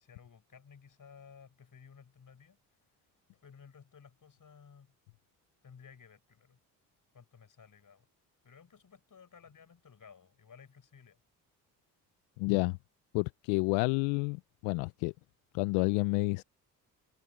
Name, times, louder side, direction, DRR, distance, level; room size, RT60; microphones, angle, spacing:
voice 1, 0.0-2.6 3.3-4.9 5.6-6.6 7.1-8.1 8.4-11.2, left 6 dB, 45° left, 5.5 m, -56 dB
voice 2, 12.4-12.8 13.1-15.1 15.5-16.4, left 29 dB, 80° left, 0.7 m, -29 dB
hypercardioid pair, 50°, 46 cm